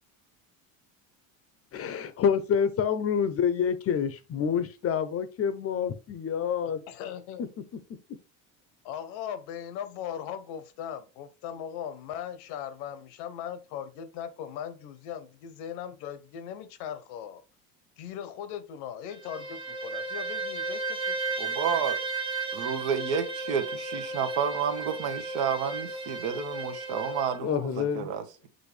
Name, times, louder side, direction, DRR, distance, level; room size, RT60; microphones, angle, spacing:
voice 1, 1.7-6.8 27.4-28.1, left 7 dB, 35° left, 0.6 m, -27 dB
voice 2, 6.9-7.5 8.8-17.4 18.0-21.5, left 9 dB, 75° left, 0.9 m, -39 dB
Bowed string instrument, 19.1-27.4, right 3 dB, 10° right, 1.0 m, -34 dB
voice 3, 21.4-22.0 22.5-28.2, right 7 dB, 70° right, 1.0 m, -30 dB
6.3 x 2.6 x 3.2 m
supercardioid pair, 110°, 42 cm